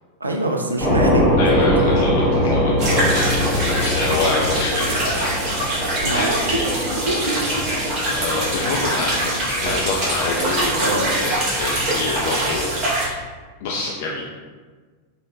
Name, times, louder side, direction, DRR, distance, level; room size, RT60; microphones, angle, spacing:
voice 1, 0.2-1.3 2.1-2.8 5.9-6.4 7.0-7.7 10.8-11.3, right 1 dB, 80° right, 2 dB, 0.3 m, -25 dB
sound 1, 0.8-12.8, left 1 dB, 15° right, 1.1 m, -23 dB
voice 2, 1.4-5.4 6.1-6.3 8.1-12.7 13.6-14.2, left 3 dB, 50° left, -3 dB, 0.3 m, -26 dB
sound 2, 2.8-13.1, right 1 dB, 40° right, 0.8 m, -24 dB
sound 3, 3.6-11.2, left 1 dB, 65° right, 1.0 m, -35 dB
3.3 x 2.1 x 2.7 m, 1.4 s
figure-of-eight pair, 90°, 0 cm